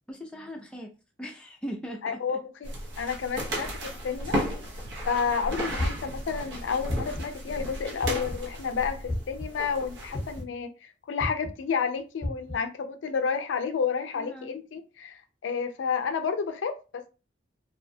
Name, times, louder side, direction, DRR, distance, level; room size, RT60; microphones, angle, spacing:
voice 1, 0.1-0.9 1.2-2.4 14.1-14.6, equal, 5° left, 0.4 m, -39 dB
voice 2, 2.0-2.7 3.0-4.4 5.1-17.1, left 6 dB, 75° left, 0.4 m, -30 dB
sound 1, 2.6-10.4, equal, 65° right, 0.7 m, -35 dB
sound 2, 5.8-6.2 6.9-7.4 8.0-8.5 9.1-9.4 10.1-10.5 11.2-11.5 12.2-12.6, left 1 dB, 25° left, 0.8 m, -31 dB
2.7 x 2.1 x 2.6 m
head